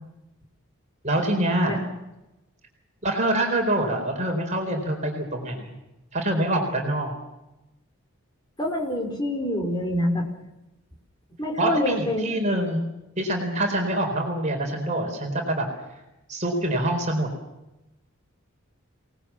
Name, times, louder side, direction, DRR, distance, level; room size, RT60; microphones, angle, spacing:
voice 1, 1.0-1.8 3.0-5.7 6.1-7.1 11.6-12.8 13.2-15.7 16.3-17.3, right 1 dB, 30° right, 2 dB, 4.3 m, -25 dB
voice 2, 8.6-10.2 11.4-12.4, left 1 dB, 20° left, 1 dB, 4.4 m, -26 dB
27.5 x 19.5 x 7.4 m, 0.95 s
head